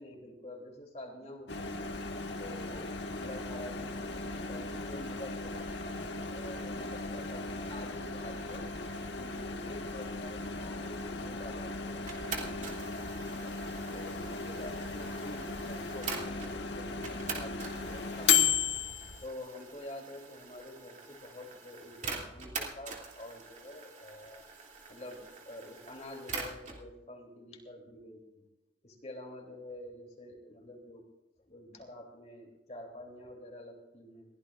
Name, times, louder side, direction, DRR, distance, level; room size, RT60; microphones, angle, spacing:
voice 1, 0.0-2.0 2.4-2.9 3.2-8.7 9.2-13.5 13.9-18.4 18.7-18.8 19.2-24.4 24.9-28.4 28.8-31.1 31.5-34.3, left 1 dB, 35° left, 2 dB, 3.2 m, -47 dB
Microwave oven, 1.5-19.2, left 5 dB, 75° left, 1.6 m, -35 dB
sound 1, 12.1-16.5 17.0-26.8, right 4 dB, 40° right, 2.8 m, -44 dB
22.0 x 16.5 x 2.6 m, 1.0 s
head